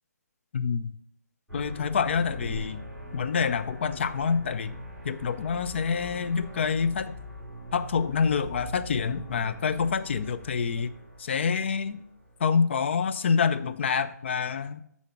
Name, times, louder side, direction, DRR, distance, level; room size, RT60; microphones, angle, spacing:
voice 1, 0.5-1.0 1.5-2.8 3.1-4.8 5.0-7.1 7.7-10.9 11.2-12.0 12.4-14.8, left 6 dB, 40° left, 12 dB, 0.6 m, -27 dB
sound 1, 1.5-12.7, equal, ahead, 2.8 m, -42 dB
11.5 x 4.3 x 6.0 m, 0.72 s
hypercardioid pair, 165°, 9 cm